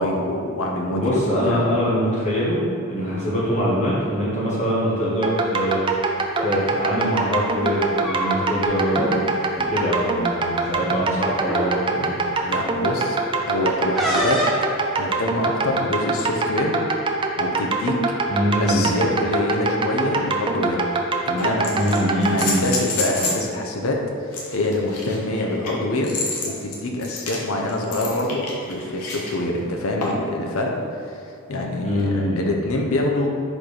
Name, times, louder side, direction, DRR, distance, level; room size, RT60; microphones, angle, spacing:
voice 1, 0.0-1.6 3.0-3.2 12.4-13.2 13.5-14.4 15.0-16.8 17.1-18.0 18.6-20.8 21.2-21.7 22.2-24.0 24.3-26.1 26.4-30.7 31.1-31.2 31.5-33.3, left 1 dB, 65° left, 1 dB, 0.7 m, -25 dB
voice 2, 0.9-2.6 2.9-6.0 6.4-9.3 9.7-12.1 18.3-18.9 21.7-22.6 31.8-32.4, equal, 30° left, -8 dB, 1.2 m, -23 dB
sound 1, 5.2-22.6, right 3 dB, 20° right, 0.4 m, -24 dB
sound 2, 6.2-6.5 7.8-8.7 8.9-9.1 9.5-9.7 10.7-10.8 11.4-11.7 14.0-14.7, right 1 dB, ahead, 0.8 m, -25 dB
sound 3, 20.3-20.4 21.4-23.5 24.3-29.3 30.0-30.4 32.0-32.1, left 3 dB, 90° left, 1.1 m, -29 dB
4.4 x 4.3 x 4.9 m, 2.4 s
head